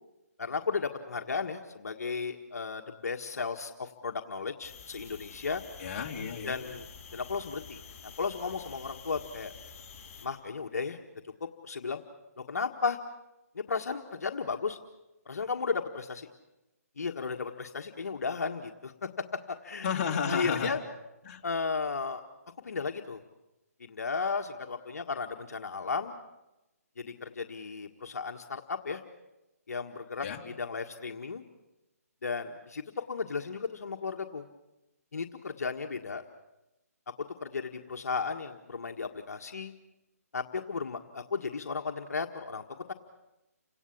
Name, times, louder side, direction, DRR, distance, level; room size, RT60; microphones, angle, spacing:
voice 1, 0.4-5.6 6.4-6.8 7.1-7.8 8.2-9.5 10.2-11.0 11.4-12.0 12.4-13.0 13.5-14.8 15.2-16.3 17.0-19.9 20.3-20.8 21.4-22.2 22.6-23.2 23.8-26.2 27.0-29.0 29.7-31.4 32.2-32.8 33.1-34.4 35.1-36.2 37.4-39.7 40.3-42.9, left 5 dB, 70° left, 4 dB, 1.6 m, -34 dB
sound 1, 4.6-10.3, left 6 dB, 20° left, 6.6 m, -49 dB
voice 2, 5.8-6.6 19.8-20.8 21.2-21.4 30.2-30.4, left 6 dB, 35° left, 0 dB, 3.1 m, -32 dB
29.5 x 18.0 x 8.7 m, 0.96 s
hypercardioid pair, 155°, 9 cm